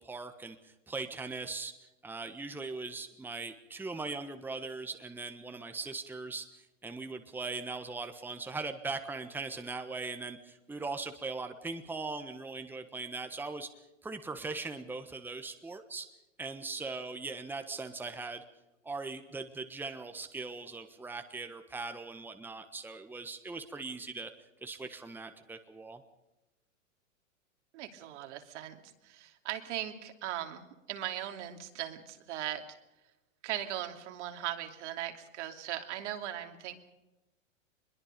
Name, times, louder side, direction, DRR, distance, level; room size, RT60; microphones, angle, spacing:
voice 1, 0.0-1.7 2.0-13.7 14.0-16.1 16.4-18.4 18.8-24.3 24.6-26.0, right 3 dB, 5° right, 7 dB, 1.3 m, -40 dB
voice 2, 27.7-32.6 33.4-36.8, right 12 dB, 60° right, 5 dB, 2.9 m, -39 dB
23.0 x 22.0 x 5.3 m, 1.0 s
hypercardioid pair, 120°, 39 cm